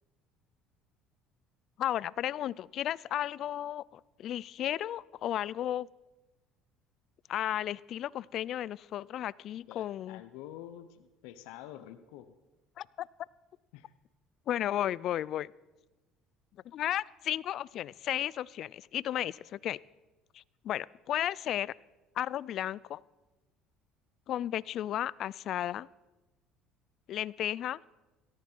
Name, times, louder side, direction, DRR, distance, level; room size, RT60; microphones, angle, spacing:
voice 1, 1.8-5.9 7.3-10.2 12.8-13.1 14.5-15.5 16.7-19.8 20.3-21.7 22.2-23.0 24.3-25.9 27.1-27.8, left 12 dB, 55° left, 23 dB, 0.4 m, -34 dB
voice 2, 9.5-12.3 13.7-13.9, left 12 dB, 80° left, 11 dB, 0.9 m, -48 dB
17.5 x 14.5 x 4.6 m, 1.1 s
supercardioid pair, 95°, 0 cm